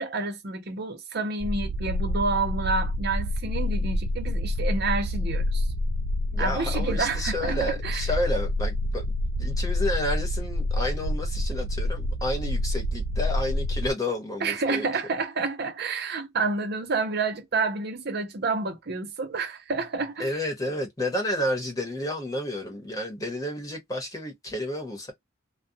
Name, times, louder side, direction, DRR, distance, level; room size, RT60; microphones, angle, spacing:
voice 1, 0.0-5.7 6.4-8.1 14.4-20.3, right 3 dB, 55° right, 0.7 m, -29 dB
sound 1, 1.4-13.9, left 1 dB, 40° right, 0.3 m, -28 dB
voice 2, 6.3-9.0 9.4-14.9 20.2-25.1, left 1 dB, 20° left, 1.0 m, -31 dB
2.3 x 2.3 x 2.6 m
head